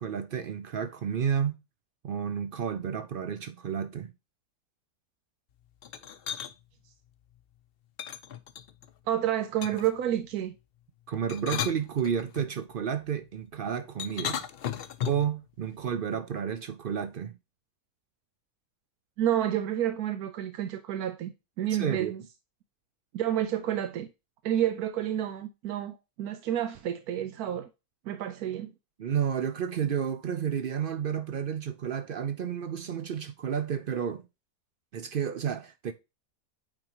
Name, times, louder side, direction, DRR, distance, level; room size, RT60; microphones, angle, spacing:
voice 1, 0.0-1.6 2.0-4.1 11.1-14.4 15.1-17.3 21.8-22.1 29.0-34.2 34.9-35.9, right 8 dB, 65° right, 0.5 m, -31 dB
sound 1, 5.8-6.5 8.0-8.9 9.6-10.0 11.1-12.5 14.0-15.3, left 9 dB, 60° left, 0.6 m, -35 dB
voice 2, 9.1-10.5 19.2-21.3 21.6-22.2 23.1-24.1 24.4-27.7 28.1-28.7, right 11 dB, 90° right, 1.2 m, -29 dB
8.7 x 3.8 x 2.9 m
omnidirectional pair, 1.6 m